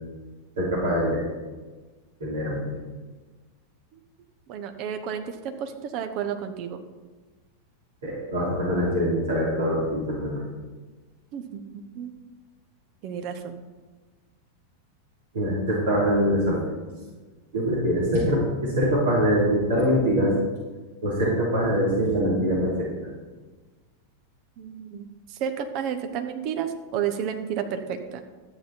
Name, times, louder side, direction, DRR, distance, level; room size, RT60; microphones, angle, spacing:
voice 1, 0.6-1.2 2.2-2.7 8.0-10.4 15.3-16.6 17.5-20.3 21.0-23.1, equal, 60° right, -6 dB, 3.5 m, -23 dB
voice 2, 4.5-6.8 11.3-11.6 12.0-12.1 13.0-13.6 24.6-28.2, right 8 dB, 40° right, 8 dB, 1.1 m, -31 dB
12.5 x 8.9 x 4.4 m, 1.3 s
figure-of-eight pair, 90°, 0 cm